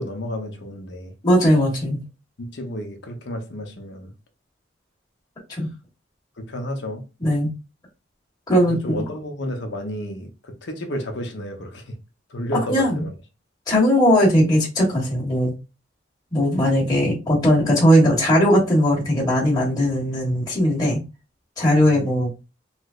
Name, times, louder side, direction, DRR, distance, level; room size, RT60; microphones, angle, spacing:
voice 1, 0.0-1.1 2.4-4.1 6.4-7.0 8.6-11.9 12.3-13.1 21.8-22.1, equal, 65° left, 0.8 m, -31 dB
voice 2, 1.2-2.0 5.5-5.7 7.2-7.5 8.5-9.0 12.7-13.0 13.7-15.5 16.3-21.0 21.6-22.3, equal, 20° left, 1.1 m, -18 dB
3.2 x 3.0 x 2.4 m
head